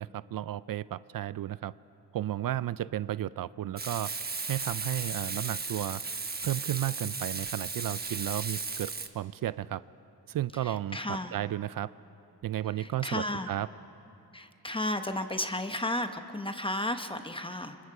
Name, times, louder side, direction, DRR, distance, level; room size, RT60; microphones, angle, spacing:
voice 1, 0.0-1.7 2.1-4.1 4.5-6.0 6.4-9.8 10.3-11.9 12.4-13.7, right 12 dB, 60° right, 17 dB, 0.5 m, -33 dB
Frying (food), 3.8-9.1, right 4 dB, 25° right, 1.1 m, -35 dB
voice 2, 10.6-11.3 12.8-13.5 14.3-17.8, left 1 dB, 15° left, 8 dB, 1.0 m, -33 dB
29.0 x 26.0 x 4.9 m, 2.8 s
cardioid pair, 105°, 38 cm